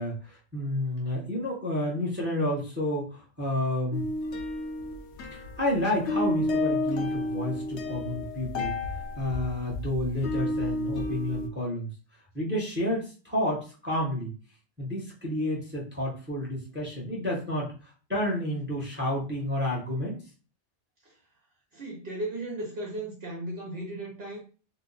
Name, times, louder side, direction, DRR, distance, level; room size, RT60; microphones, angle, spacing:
voice 1, 0.0-4.1 5.3-8.7 9.2-11.9 12.3-14.3 14.8-20.2, left 1 dB, 10° right, 0.7 m, -30 dB
sound 1, 3.9-5.8 6.1-11.5, left 2 dB, 70° left, 0.9 m, -31 dB
voice 2, 21.7-24.4, right 1 dB, 60° right, 1.0 m, -36 dB
2.8 x 2.1 x 3.9 m
omnidirectional pair, 1.2 m